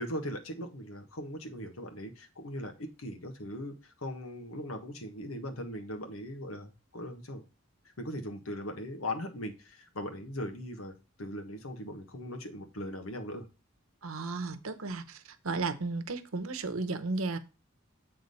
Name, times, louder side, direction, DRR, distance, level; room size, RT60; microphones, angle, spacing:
voice 1, 0.0-7.4 8.0-13.5, left 1 dB, 90° left, 5 dB, 1.4 m, -39 dB
voice 2, 14.0-17.4, right 3 dB, 90° right, 9 dB, 0.9 m, -34 dB
8.1 x 3.7 x 5.3 m, 0.30 s
head